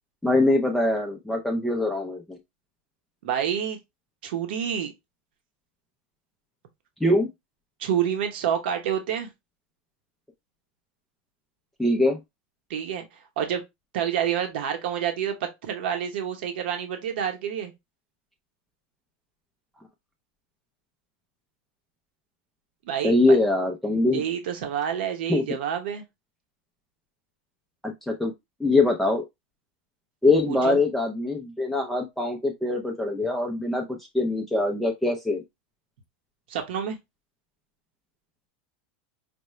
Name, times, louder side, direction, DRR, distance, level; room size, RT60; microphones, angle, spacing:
voice 1, 0.2-2.4 7.0-7.3 11.8-12.2 23.0-24.2 25.3-25.4 27.8-28.3 28.6-29.2 30.2-35.4, left 2 dB, ahead, 0.5 m, -23 dB
voice 2, 3.2-3.8 4.2-4.9 7.8-9.3 12.7-13.0 13.4-13.6 13.9-17.7 22.9-23.4 24.1-26.0 30.5-30.8 36.5-37.0, right 9 dB, 75° right, 1.0 m, -28 dB
5.3 x 2.2 x 3.1 m
supercardioid pair, 145°, 6 cm